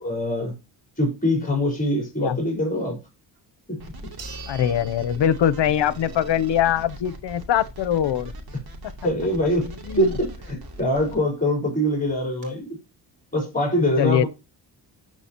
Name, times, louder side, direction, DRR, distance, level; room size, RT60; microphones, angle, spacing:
voice 1, 0.0-0.5 1.0-3.0 3.7-4.1 9.0-12.8 13.3-14.3, equal, 20° left, 4.4 m, -24 dB
sound 1, 3.4-3.5 4.2-5.9 6.3-6.4 11.0-11.1 11.4-11.5 12.0-12.5, right 6 dB, 85° right, 4.5 m, -44 dB
sound 2, 3.8-11.2, right 1 dB, 60° right, 2.8 m, -39 dB
voice 2, 4.5-8.3 9.9-10.1 14.0-14.2, left 10 dB, 75° left, 0.8 m, -22 dB
14.0 x 4.8 x 2.9 m
wide cardioid pair, 130°, 42 cm